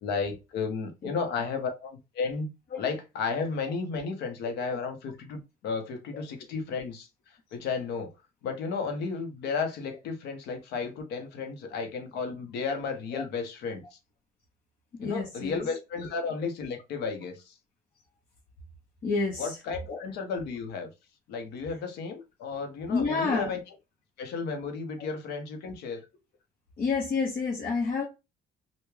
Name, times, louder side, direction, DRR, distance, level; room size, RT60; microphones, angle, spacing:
voice 1, 0.0-2.5 2.8-7.1 7.5-8.1 8.4-14.0 15.0-17.5 19.4-20.9 21.3-23.6 24.2-26.0, left 5 dB, 80° left, 1.0 m, -33 dB
voice 2, 15.0-15.7 16.0-16.1 19.0-19.5 19.9-20.0 22.9-23.5 26.8-28.0, left 4 dB, 50° left, 1.0 m, -29 dB
3.4 x 2.4 x 3.2 m
cardioid pair, 110°, 17 cm